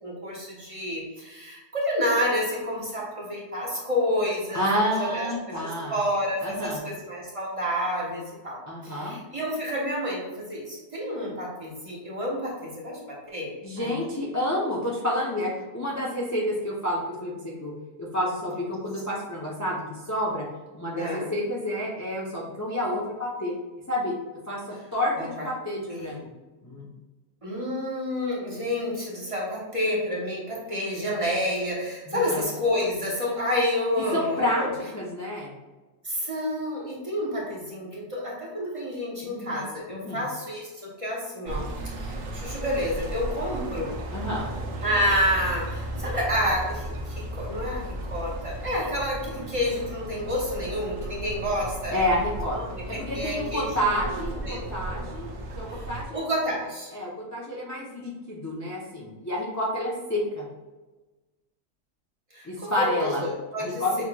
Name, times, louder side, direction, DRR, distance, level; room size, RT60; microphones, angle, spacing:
voice 1, 0.0-14.1 18.2-18.3 20.9-21.3 25.1-25.5 25.9-26.2 27.4-34.7 36.0-43.9 44.8-52.1 52.5-54.6 54.9-55.1 55.7-55.8 56.1-56.9 62.3-64.0, left 1 dB, 30° right, -5 dB, 1.0 m, -29 dB
voice 2, 4.5-6.0 6.4-6.8 8.7-9.2 13.6-17.7 18.0-20.5 20.7-23.6 23.9-24.2 24.5-26.3 26.6-26.9 32.1-32.4 34.1-34.7 34.9-35.5 39.2-39.6 39.9-40.2 44.1-44.5 51.9-52.6 52.9-55.3 55.6-56.3 56.9-60.5 62.4-63.2 63.6-64.0, left 1 dB, 20° left, -5 dB, 0.5 m, -29 dB
sound 1, 41.5-56.0, right 1 dB, 85° right, 1.0 m, -35 dB
6.2 x 3.0 x 2.3 m, 1.2 s
omnidirectional pair, 1.3 m